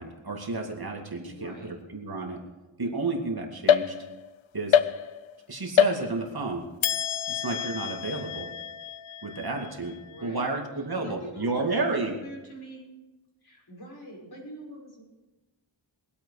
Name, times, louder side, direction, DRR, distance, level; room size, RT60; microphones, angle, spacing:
voice 1, 0.0-2.4 2.8-4.0 4.5-4.8 5.5-6.7 7.3-8.5 9.2-12.2, right 3 dB, 50° right, 1 dB, 2.3 m, -31 dB
voice 2, 1.2-1.7 10.0-10.5 10.9-12.8 13.4-15.0, right 1 dB, 50° left, -3 dB, 6.0 m, -44 dB
sound 1, 3.7-4.3 4.7-5.4 5.8-6.4 6.8-10.3, left 9 dB, 80° left, 0.6 m, -27 dB
22.5 x 8.4 x 4.9 m, 1.1 s
wide cardioid pair, 75°, 47 cm